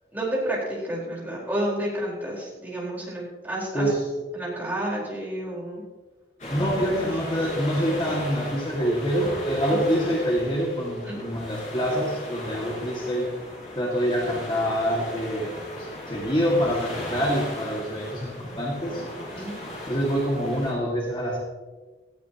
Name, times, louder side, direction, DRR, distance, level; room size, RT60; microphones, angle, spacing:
voice 1, 0.1-3.9 4.3-5.8 9.6-9.9 11.0-11.4 19.3-19.7, right 1 dB, 10° right, -5 dB, 4.5 m, -30 dB
sound 1, 6.4-20.7, left 1 dB, 45° left, 5.2 m, -37 dB
voice 2, 6.5-13.3 13.8-19.0 19.4-19.5 19.9-21.4, equal, 30° left, -3 dB, 2.1 m, -26 dB
17.5 x 15.0 x 3.0 m, 1.3 s
head